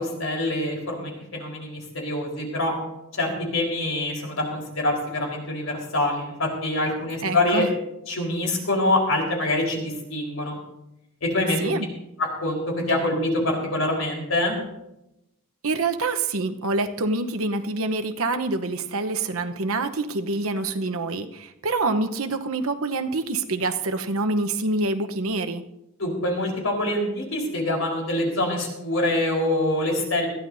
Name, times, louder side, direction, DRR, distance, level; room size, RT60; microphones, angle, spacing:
voice 1, 0.0-2.7 3.1-7.7 8.1-10.6 11.2-11.6 12.2-14.5 26.0-30.3, left 1 dB, 75° left, 0 dB, 4.2 m, -25 dB
voice 2, 7.2-7.7 11.6-11.9 15.6-25.6, right 2 dB, 90° right, 7 dB, 0.9 m, -26 dB
21.0 x 14.5 x 2.7 m, 0.89 s
head